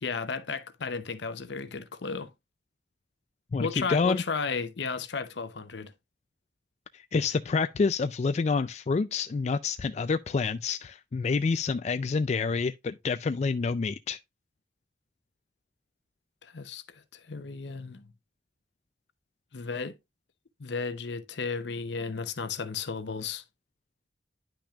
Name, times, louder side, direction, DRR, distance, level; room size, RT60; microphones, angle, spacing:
voice 1, 0.0-2.3 3.6-5.9 16.4-18.1 19.5-20.0 20.6-23.4, left 5 dB, 75° left, 0.7 m, -34 dB
voice 2, 3.5-4.2 6.9-14.2, left 4 dB, 40° left, 0.3 m, -28 dB
10.0 x 5.9 x 2.3 m
head